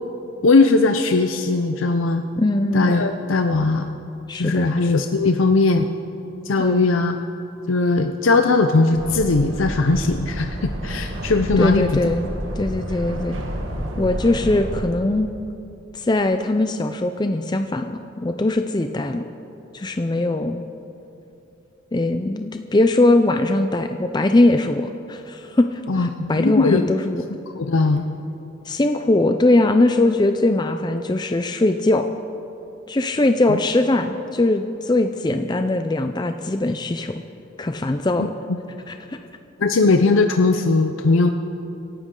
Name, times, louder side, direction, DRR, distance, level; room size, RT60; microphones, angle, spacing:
voice 1, 0.4-2.2 2.7-3.9 4.4-5.9 6.4-7.2 7.7-11.9 25.9-26.9 27.5-28.1 33.5-33.6 39.6-41.3, left 3 dB, 90° left, 6 dB, 0.6 m, -19 dB
voice 2, 2.4-3.0 4.3-4.7 6.6-6.8 11.6-13.4 14.0-15.3 15.9-19.2 19.7-20.6 21.9-27.3 28.7-32.1 32.9-37.2 37.6-38.3 38.9-39.2, left 2 dB, 20° left, 6 dB, 0.5 m, -21 dB
sound 1, 8.9-14.9, right 1 dB, 85° right, 1.5 m, -30 dB
26.5 x 11.5 x 3.8 m, 2.8 s
head